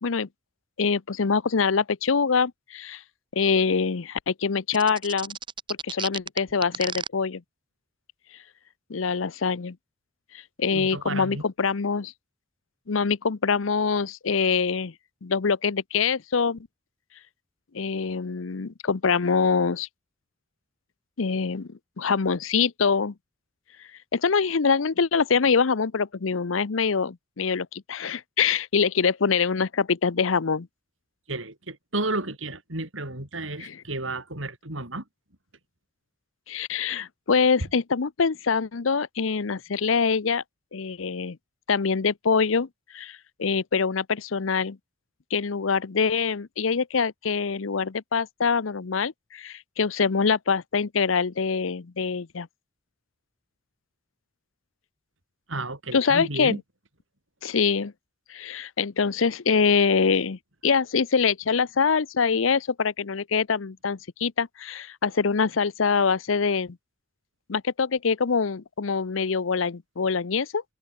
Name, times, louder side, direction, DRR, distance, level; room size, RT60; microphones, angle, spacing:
voice 1, 0.8-3.0 3.3-5.4 5.8-7.4 8.9-9.8 10.6-12.1 12.9-14.9 15.2-16.6 17.7-19.9 21.2-23.1 24.1-30.7 33.6-33.8 36.5-40.4 40.7-41.4 41.7-42.7 42.9-44.8 45.3-52.5 55.9-56.6 57.4-57.9 58.3-66.8 67.5-70.6, left 5 dB, 85° left, 0.7 m, -24 dB
sound 1, 4.7-7.1, right 6 dB, 25° right, 4.8 m, -33 dB
voice 2, 10.7-11.4 31.3-35.0 55.5-56.6, right 2 dB, 80° right, 6.7 m, -32 dB
head